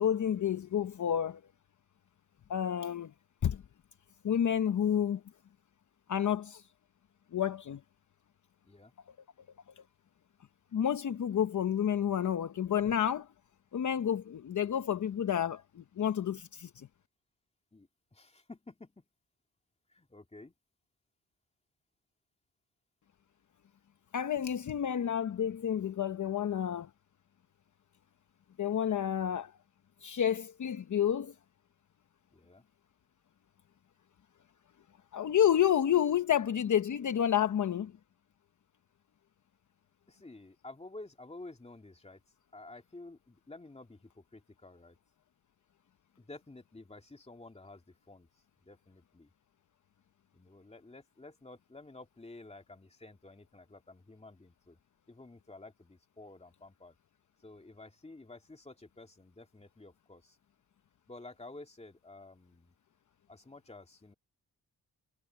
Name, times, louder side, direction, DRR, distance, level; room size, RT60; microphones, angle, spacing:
voice 1, 0.0-1.4 2.5-3.1 3.4-3.6 4.2-5.2 6.1-6.6 7.3-7.8 9.8-9.9 10.7-13.3 13.7-16.9 24.1-26.9 28.6-29.5 30.0-31.3 35.1-37.9, left 9 dB, 55° left, 0.9 m, -30 dB
voice 2, 17.7-19.0 19.9-20.5 32.3-32.6 40.1-42.2 42.5-45.0 46.2-48.3 48.6-49.3 50.3-54.8 55.1-57.0 57.4-60.4 61.1-62.7 63.3-64.1, left 2 dB, 15° left, 2.7 m, -51 dB
cardioid pair, 95°, 37 cm